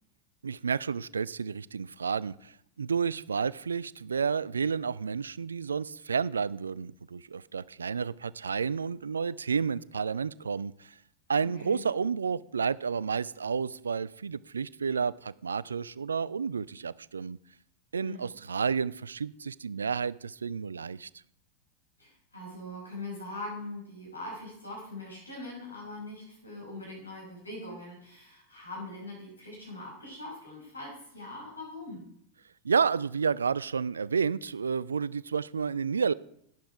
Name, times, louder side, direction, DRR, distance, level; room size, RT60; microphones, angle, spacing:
voice 1, 0.4-10.9 11.3-17.4 17.9-21.1 32.6-36.1, right 6 dB, 70° right, 21 dB, 0.3 m, -31 dB
voice 2, 11.4-11.9 18.0-18.3 22.0-32.0, left 2 dB, 80° left, -2 dB, 5.6 m, -42 dB
11.5 x 9.2 x 4.7 m, 0.71 s
figure-of-eight pair, 90°, 0 cm